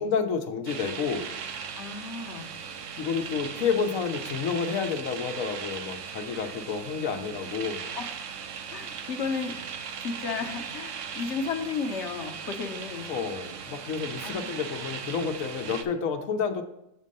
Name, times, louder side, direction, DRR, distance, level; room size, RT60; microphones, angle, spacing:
voice 1, 0.0-1.3 3.0-7.8 13.1-16.6, left 6 dB, 85° left, 7 dB, 1.2 m, -30 dB
sound 1, 0.7-15.8, right 7 dB, 70° right, 1.0 m, -38 dB
voice 2, 1.8-2.5 8.0-8.3 8.7-9.5 10.0-13.1 14.2-14.5, left 5 dB, 65° left, 4 dB, 1.1 m, -33 dB
7.4 x 4.4 x 5.3 m, 0.84 s
omnidirectional pair, 1.4 m